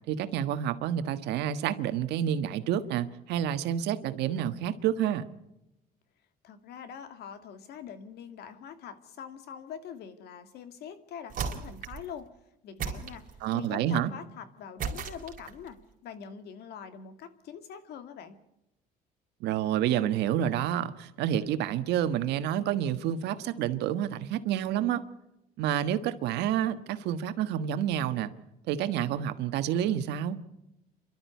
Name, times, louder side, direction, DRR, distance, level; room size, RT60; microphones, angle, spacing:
voice 1, 0.1-5.3 13.4-14.1 19.4-25.0 25.6-28.3 28.7-30.4, right 10 dB, 85° right, 11 dB, 1.3 m, -29 dB
voice 2, 6.4-12.3 12.6-15.8 16.0-18.4, left 8 dB, 75° left, 9 dB, 2.3 m, -44 dB
sound 1, 11.3-12.1 12.8-13.7 14.8-15.7, right 6 dB, 55° right, 3.9 m, -36 dB
29.0 x 12.5 x 8.3 m, 0.88 s
cardioid pair, 110°, 17 cm